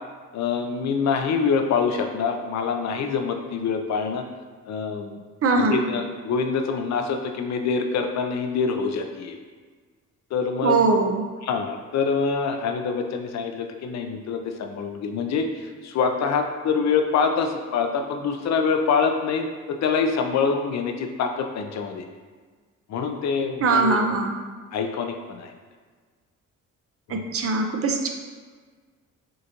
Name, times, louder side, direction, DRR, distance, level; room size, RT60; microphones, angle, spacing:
voice 1, 0.3-4.2 4.7-5.2 5.5-9.4 10.3-10.8 11.4-22.0 22.9-24.1 24.7-25.5 27.1-27.2, left 5 dB, 65° left, 5 dB, 0.6 m, -25 dB
voice 2, 5.4-5.8 10.6-11.3 23.6-24.3 27.1-28.1, right 3 dB, 50° right, 3 dB, 0.6 m, -21 dB
6.4 x 2.5 x 2.9 m, 1.5 s
cardioid pair, 90°, 30 cm